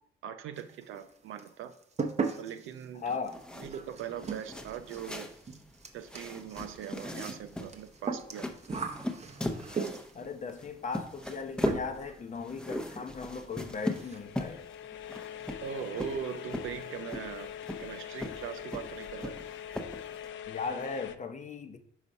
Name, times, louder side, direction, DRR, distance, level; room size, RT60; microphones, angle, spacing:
voice 1, 0.2-1.7 2.4-3.2 3.6-5.3 5.9-8.5 15.6-17.5 17.8-19.4, right 8 dB, 80° right, 8 dB, 0.6 m, -40 dB
sound 1, 0.5-1.1 1.4-10.3 11.2-11.4 11.7-12.1 12.4-12.5 12.9-13.0 13.3-13.4 13.8-14.2, right 5 dB, 35° right, 0.8 m, -38 dB
voice 2, 2.9-3.4 10.1-14.7 20.5-21.8, left 5 dB, 40° left, 7 dB, 0.7 m, -37 dB
sound 2, 3.3-20.3, left 1 dB, 5° left, 0.7 m, -39 dB
sound 3, 13.5-21.2, left 10 dB, 70° left, 0.5 m, -43 dB
5.0 x 4.0 x 5.3 m, 0.70 s
cardioid pair, 90°, 20 cm